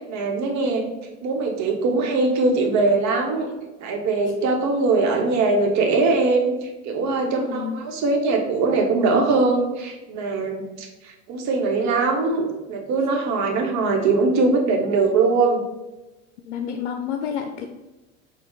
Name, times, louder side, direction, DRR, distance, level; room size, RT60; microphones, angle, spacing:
voice 1, 0.1-0.8 1.2-3.5 3.8-10.9 11.3-15.6, right 3 dB, 55° right, 2 dB, 1.1 m, -21 dB
voice 2, 7.1-7.7 16.5-17.7, left 8 dB, 75° left, 5 dB, 0.5 m, -29 dB
4.2 x 2.3 x 4.5 m, 1.1 s
hypercardioid pair, 75°, 35 cm